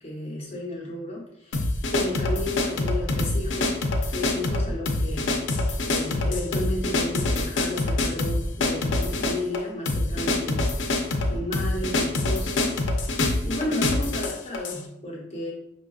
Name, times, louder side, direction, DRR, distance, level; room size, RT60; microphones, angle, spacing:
voice 1, 0.0-3.8 4.1-10.7 11.3-12.8 13.4-15.5, left 1 dB, 30° left, -4 dB, 1.0 m, -33 dB
sound 1, 1.5-14.8, left 2 dB, 75° left, 0.5 m, -25 dB
5.3 x 2.5 x 2.3 m, 0.78 s
head